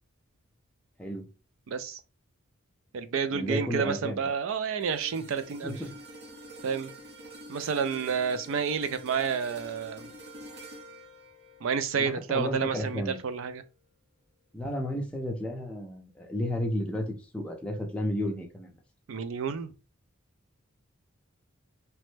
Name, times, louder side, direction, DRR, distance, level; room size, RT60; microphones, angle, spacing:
voice 1, 1.7-2.0 2.9-5.8 6.6-6.9 7.5-10.1 11.6-13.6 19.1-19.7, right 6 dB, 65° right, 0.4 m, -30 dB
voice 2, 3.3-4.2 5.6-5.9 12.0-13.2 14.5-18.7, left 1 dB, 5° left, 0.5 m, -32 dB
sound 1, 4.8-13.2 13.6-13.8, right 1 dB, 50° right, 0.8 m, -48 dB
3.0 x 2.1 x 3.1 m
head